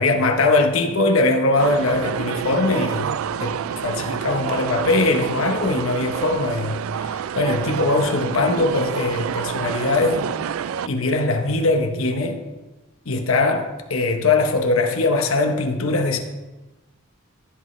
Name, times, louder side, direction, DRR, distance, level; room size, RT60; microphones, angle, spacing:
voice 1, 0.0-3.1 3.4-3.6 3.8-10.2 10.8-12.4 13.1-16.2, left 2 dB, 85° left, 4 dB, 1.1 m, -21 dB
sound 1, 1.6-10.9, right 8 dB, 85° right, 0.3 m, -28 dB
14.0 x 8.2 x 3.2 m, 1.1 s
head